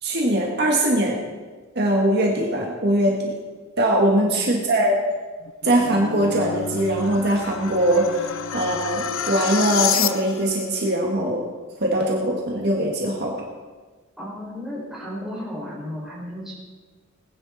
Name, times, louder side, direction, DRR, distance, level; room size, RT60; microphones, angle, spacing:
voice 1, 0.0-1.2 1.8-3.3 3.8-5.0 5.6-11.4 11.8-13.3, right 1 dB, 55° right, -1 dB, 1.9 m, -21 dB
sound 1, 5.4-10.6, left 8 dB, 65° left, 0.6 m, -28 dB
voice 2, 14.2-16.5, equal, 5° right, -7 dB, 5.6 m, -34 dB
20.0 x 10.5 x 4.2 m, 1.4 s
head